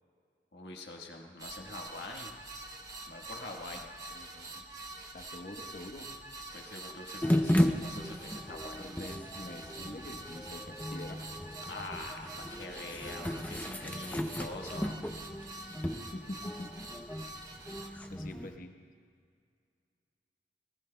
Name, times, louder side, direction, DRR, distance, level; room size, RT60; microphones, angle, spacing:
voice 1, 0.5-2.3 3.1-3.8 6.5-8.8 11.7-15.0, left 2 dB, 65° left, 1 dB, 1.4 m, -44 dB
sound 1, 1.4-17.9, right 2 dB, 20° right, 0.9 m, -46 dB
voice 2, 4.1-4.6 5.1-6.1 8.8-11.2 16.1-16.7 18.1-18.7, left 1 dB, 50° left, 5 dB, 1.0 m, -45 dB
sound 2, 7.2-18.6, left 1 dB, 10° left, 0.6 m, -35 dB
26.0 x 19.0 x 2.3 m, 2.2 s
head